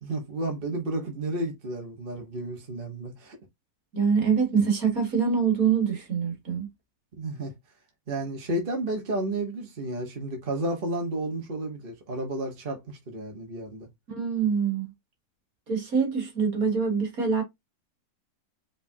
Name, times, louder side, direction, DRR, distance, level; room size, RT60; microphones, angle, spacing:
voice 1, 0.0-3.4 7.2-7.5 8.1-13.9, right 1 dB, 35° right, 1.3 m, -32 dB
voice 2, 3.9-6.7 14.1-14.9 15.7-17.4, right 6 dB, 50° right, 2.1 m, -24 dB
5.2 x 3.6 x 2.7 m
omnidirectional pair, 2.0 m